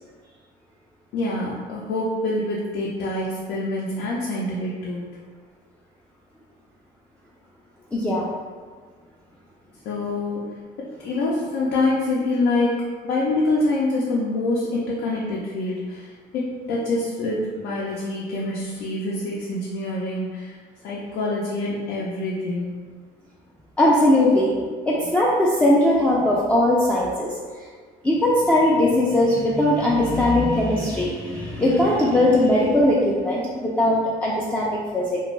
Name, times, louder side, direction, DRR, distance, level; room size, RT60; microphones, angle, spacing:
voice 1, 1.1-5.1 9.8-10.4 10.8-12.8 13.0-20.6 20.8-22.7, left 2 dB, 80° left, -5 dB, 0.5 m, -25 dB
voice 2, 7.9-8.3 23.8-24.5 24.8-27.4 28.0-35.2, left 1 dB, 5° left, -6 dB, 0.3 m, -19 dB
2.5 x 2.2 x 3.1 m, 1.5 s
cardioid pair, 110°, 17 cm